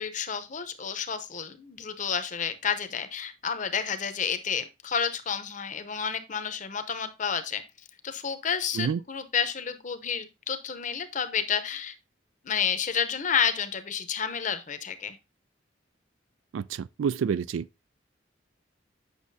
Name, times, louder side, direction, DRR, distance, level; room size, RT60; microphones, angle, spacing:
voice 1, 0.0-7.6 8.0-11.9 12.4-15.2, left 7 dB, 40° left, 0.7 m, -30 dB
voice 2, 16.5-17.6, right 7 dB, 80° right, 0.3 m, -28 dB
8.3 x 6.0 x 2.7 m
head